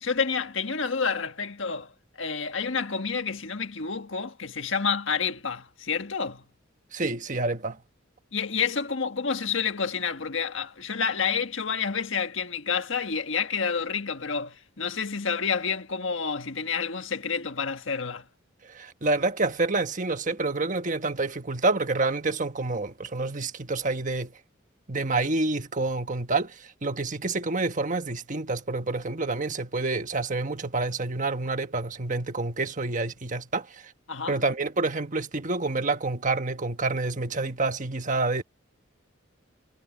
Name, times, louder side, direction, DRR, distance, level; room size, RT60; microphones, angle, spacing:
voice 1, 0.0-1.9 2.2-6.4 8.3-18.2 34.1-34.4, left 5 dB, 65° left, 1.6 m, -29 dB
voice 2, 6.9-7.8 18.7-24.3 24.9-33.9 34.3-38.4, right 3 dB, 40° right, 1.4 m, -28 dB
head